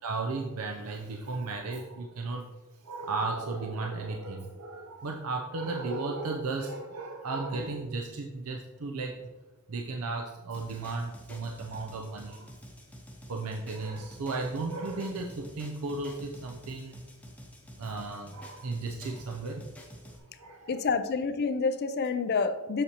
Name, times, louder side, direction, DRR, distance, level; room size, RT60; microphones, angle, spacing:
voice 1, 0.0-2.4 2.8-9.3 9.7-12.5 13.3-17.0 17.8-19.6 20.0-20.9, right 3 dB, 80° right, 1 dB, 0.6 m, -35 dB
sound 1, 10.5-20.2, equal, 5° left, 0.8 m, -49 dB
voice 2, 20.7-22.8, left 4 dB, 45° left, 10 dB, 0.4 m, -28 dB
7.2 x 6.7 x 2.9 m, 1.2 s
head